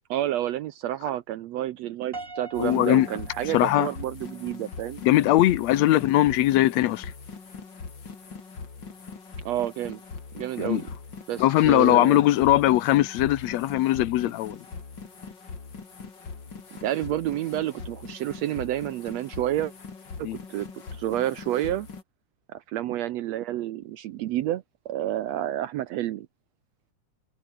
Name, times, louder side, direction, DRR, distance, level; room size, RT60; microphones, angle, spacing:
voice 1, 0.1-5.0 9.5-10.0 10.4-10.9 11.3-12.2 16.8-19.7 20.2-20.7 20.9-21.9 22.5-26.3, right 13 dB, 70° right, 1.8 m, -29 dB
Piano, 2.1-4.4, right 3 dB, 25° right, 3.9 m, -41 dB
sound 1, 2.5-22.0, left 5 dB, 35° left, 3.4 m, -41 dB
voice 2, 2.6-3.1 3.5-3.9 5.0-7.1 10.6-10.8 11.4-14.6 20.2-20.4, left 15 dB, 70° left, 1.9 m, -20 dB
omnidirectional pair, 3.4 m